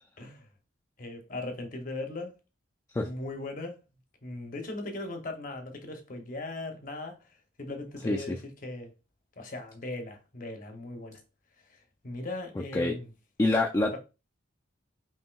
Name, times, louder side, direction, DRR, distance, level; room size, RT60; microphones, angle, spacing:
voice 1, 0.2-0.5 1.0-2.3 3.0-3.8 4.2-8.9 9.4-11.2 11.7-13.1, left 2 dB, 40° left, 0.8 m, -39 dB
voice 2, 8.0-8.4 12.7-13.0 13.4-14.0, left 2 dB, 15° left, 0.3 m, -26 dB
5.6 x 2.7 x 2.3 m
head